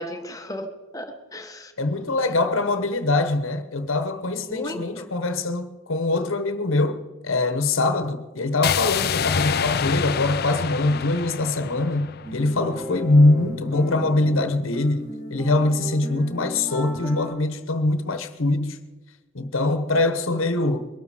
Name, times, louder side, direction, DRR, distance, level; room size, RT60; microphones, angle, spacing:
voice 1, 0.0-1.7 4.5-5.1 20.3-20.4, left 1 dB, 15° left, 1.2 m, -35 dB
voice 2, 1.8-18.8 19.3-20.9, left 2 dB, 70° left, 1.1 m, -23 dB
sound 1, 8.6-12.7, left 7 dB, 45° left, 0.5 m, -27 dB
sound 2, 12.2-17.3, equal, 15° right, 5.0 m, -35 dB
22.0 x 12.5 x 5.0 m
head